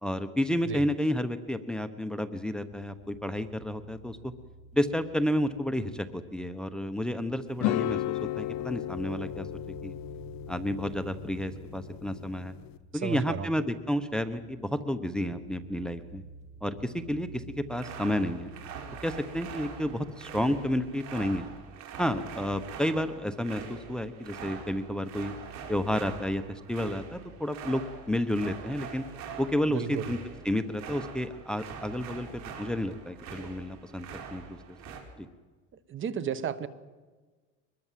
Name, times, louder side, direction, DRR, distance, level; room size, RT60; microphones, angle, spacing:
voice 1, 0.0-4.3 4.7-9.5 9.8-9.9 10.5-12.5 12.9-16.2 16.6-18.5 19.0-21.5 22.0-25.3 25.7-29.0 29.4-30.2 30.4-34.8 35.2-35.3, left 1 dB, 5° left, 11 dB, 1.0 m, -31 dB
sound 1, 2.7-21.2, right 2 dB, 20° right, 3.1 m, -50 dB
sound 2, 7.6-12.8, left 15 dB, 65° left, 0.8 m, -35 dB
voice 2, 13.0-13.5 29.7-30.0 35.9-36.7, right 8 dB, 40° right, 14 dB, 1.4 m, -33 dB
sound 3, 17.7-35.0, right 6 dB, 60° right, 5.0 m, -44 dB
24.0 x 21.0 x 7.6 m, 1.3 s
cardioid pair, 140°, 31 cm